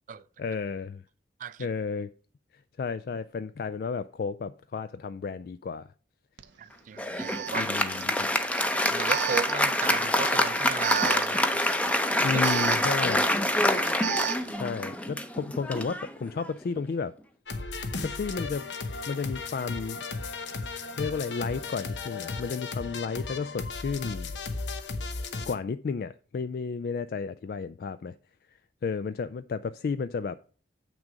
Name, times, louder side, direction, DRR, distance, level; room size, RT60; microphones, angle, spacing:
voice 1, 0.4-1.0 1.6-2.1 2.8-5.9 7.5-8.3 12.2-13.3 14.6-17.1 18.0-18.7 19.1-20.0 21.0-24.3 25.5-28.1 28.8-30.4, left 5 dB, 55° left, 0.3 m, -32 dB
Alarm, 6.4-6.5 7.2-14.6, right 10 dB, 80° right, 0.6 m, -35 dB
voice 2, 6.6-7.7 8.9-11.9, right 6 dB, 45° right, 0.3 m, -35 dB
Applause, 7.0-16.8, left 1 dB, 10° left, 0.6 m, -26 dB
sound 1, 17.5-25.5, left 4 dB, 85° left, 0.9 m, -35 dB
7.4 x 6.2 x 5.1 m
head